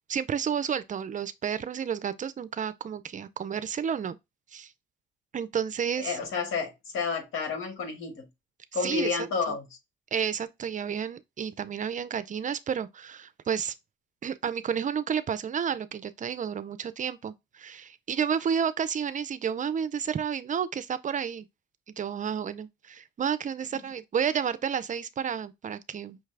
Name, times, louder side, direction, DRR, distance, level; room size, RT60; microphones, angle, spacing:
voice 1, 0.1-4.2 4.5-4.7 5.3-6.2 8.8-9.2 10.1-13.7 14.2-21.5 22.0-26.2, right 7 dB, 40° right, 0.5 m, -31 dB
voice 2, 6.0-8.3 8.7-9.8, left 5 dB, 85° left, 1.6 m, -31 dB
5.7 x 2.3 x 3.3 m
cardioid pair, 90°, 20 cm